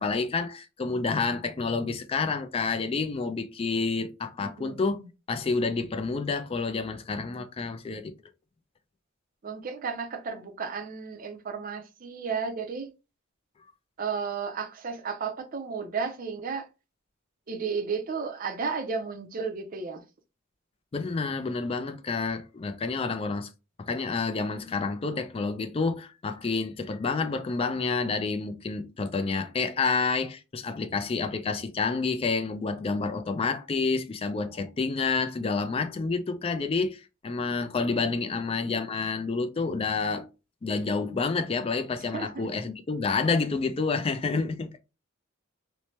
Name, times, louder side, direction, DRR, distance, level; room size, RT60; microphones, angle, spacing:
voice 1, 0.0-5.0 5.3-8.1 20.9-23.5 23.8-40.3 40.6-44.8, left 4 dB, 30° left, 0.3 m, -29 dB
voice 2, 4.4-5.1 9.4-12.9 14.0-16.7 17.5-20.0 42.1-42.5, right 5 dB, 45° right, 0.5 m, -33 dB
3.1 x 2.1 x 2.8 m
head